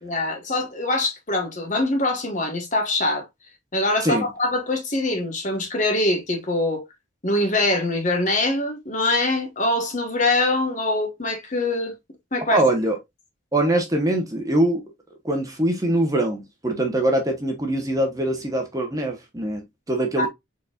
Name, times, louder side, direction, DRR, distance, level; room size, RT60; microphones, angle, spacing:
voice 1, 0.0-3.2 3.7-6.8 7.2-11.9 12.3-12.6 20.2-20.3, left 2 dB, 40° left, 1.3 m, -23 dB
voice 2, 12.5-13.0 13.5-14.8 15.2-20.3, right 1 dB, 20° right, 1.0 m, -23 dB
4.5 x 4.2 x 2.4 m
head